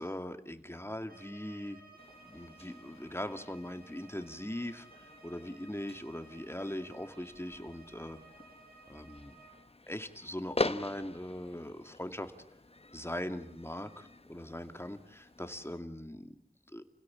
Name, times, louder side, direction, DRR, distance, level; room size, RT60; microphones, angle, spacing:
voice 1, 0.0-1.8 2.2-8.2 8.9-9.3 9.9-12.3 12.9-16.4 16.7-16.8, left 1 dB, 15° left, 8 dB, 2.3 m, -40 dB
Bowed string instrument, 1.1-9.6, right 3 dB, 85° right, 6.1 m, -57 dB
sound 1, 2.0-15.8, left 2 dB, 40° left, 1.0 m, -44 dB
29.5 x 16.5 x 8.7 m, 0.69 s
wide cardioid pair, 45°, 15 cm